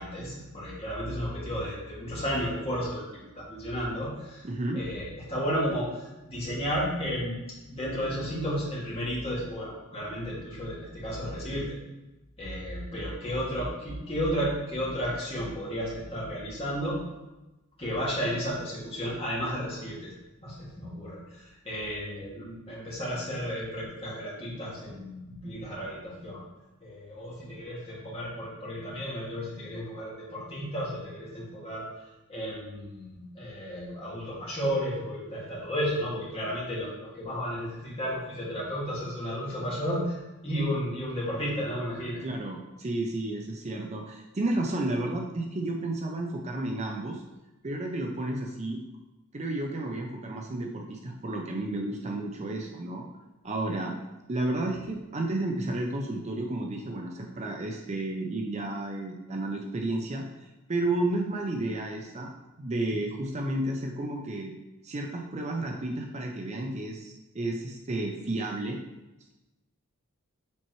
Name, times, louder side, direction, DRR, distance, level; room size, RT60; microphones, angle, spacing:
voice 1, 0.0-4.5 4.7-7.4 7.7-11.8 12.4-17.0 17.8-20.1 20.4-26.4 26.8-32.0 32.3-42.2, equal, 25° left, -6 dB, 2.0 m, -33 dB
voice 2, 4.4-4.8 42.2-47.2 47.6-48.8 49.3-53.0 53.4-53.9 54.3-62.3 62.6-64.5 64.8-68.8, right 2 dB, 30° right, 2 dB, 0.5 m, -32 dB
7.3 x 4.4 x 3.0 m, 1.0 s
head